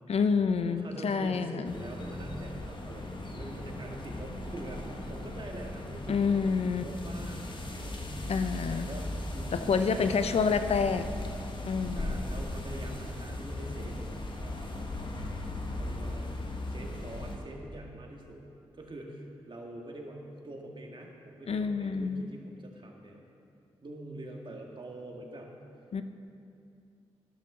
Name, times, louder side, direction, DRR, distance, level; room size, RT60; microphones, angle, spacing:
voice 1, 0.1-1.7 6.1-6.8 8.3-8.9 9.5-11.0 11.6-12.2 21.5-22.3 25.9-26.0, left 5 dB, 65° left, 10 dB, 0.6 m, -28 dB
voice 2, 0.6-8.3 8.7-10.9 11.9-14.0 14.4-15.1 15.8-18.4 18.7-23.2 23.8-25.5, right 1 dB, 45° right, 0 dB, 2.0 m, -44 dB
sound 1, 1.6-17.4, left 1 dB, 45° left, 1.5 m, -38 dB
12.0 x 12.0 x 3.8 m, 2.5 s
supercardioid pair, 45°, 11 cm